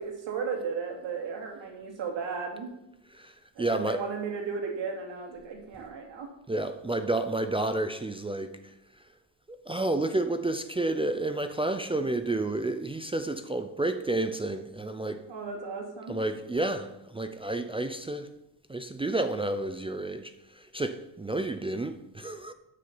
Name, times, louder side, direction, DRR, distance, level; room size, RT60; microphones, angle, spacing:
voice 1, 0.0-2.7 3.6-6.3 15.3-16.2, right 5 dB, 70° right, 3.1 m, -35 dB
voice 2, 3.6-4.0 6.5-8.5 9.5-15.2 16.1-18.3 18.7-22.5, right 2 dB, 15° right, 0.4 m, -30 dB
11.5 x 6.6 x 7.0 m
cardioid pair, 160°, 46 cm